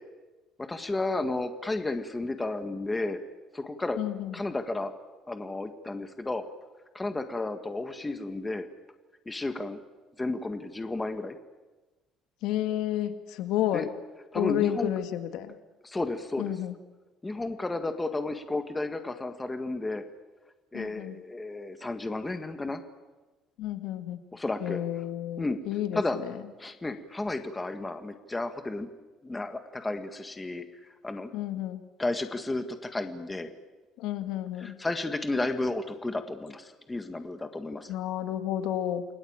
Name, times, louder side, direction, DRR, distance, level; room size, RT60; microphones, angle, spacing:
voice 1, 0.6-3.2 3.5-4.0 4.3-4.9 5.3-6.4 6.9-8.7 9.2-9.8 10.2-11.3 13.7-13.9 14.3-14.9 15.8-16.5 17.2-20.0 20.7-22.8 24.3-24.8 25.4-25.6 25.9-26.2 26.6-28.9 29.2-30.6 31.0-31.3 32.0-33.5 34.6-37.9, left 2 dB, 10° left, 8 dB, 1.7 m, -32 dB
voice 2, 4.0-4.4 12.4-13.9 14.3-15.6 16.4-16.8 20.7-21.2 23.6-24.2 24.6-26.4 31.3-31.8 34.0-34.8 37.9-39.1, left 12 dB, 80° left, 9 dB, 1.9 m, -31 dB
29.0 x 20.0 x 8.9 m, 1.2 s
cardioid pair, 155°, 0 cm